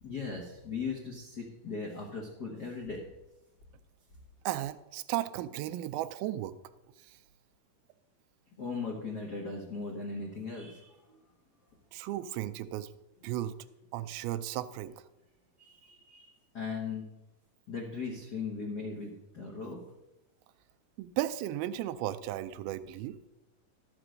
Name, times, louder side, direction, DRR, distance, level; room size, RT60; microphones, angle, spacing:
voice 1, 0.0-3.0 8.6-11.0 15.6-17.1 17.7-19.8, left 4 dB, 90° left, -2 dB, 0.8 m, -38 dB
voice 2, 4.5-6.5 7.0-7.2 11.9-12.9 13.2-13.6 13.9-15.0 21.0-23.2, right 13 dB, 85° right, 12 dB, 2.4 m, -35 dB
12.5 x 5.9 x 6.3 m, 0.96 s
omnidirectional pair, 4.3 m